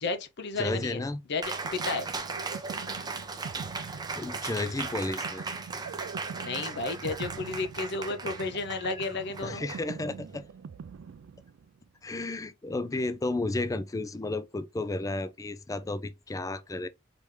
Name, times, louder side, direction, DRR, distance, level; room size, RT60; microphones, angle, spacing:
voice 1, 0.0-1.0 1.3-2.1 6.4-9.7, left 3 dB, 60° left, 0.7 m, -32 dB
voice 2, 0.6-1.2 4.2-5.4 9.4-10.5 12.0-16.9, left 2 dB, 15° left, 0.4 m, -32 dB
sound 1, 1.3-11.9, right 6 dB, 65° right, 0.3 m, -44 dB
Cheering, 1.4-10.4, right 4 dB, 20° right, 0.6 m, -37 dB
4.1 x 3.4 x 3.2 m
head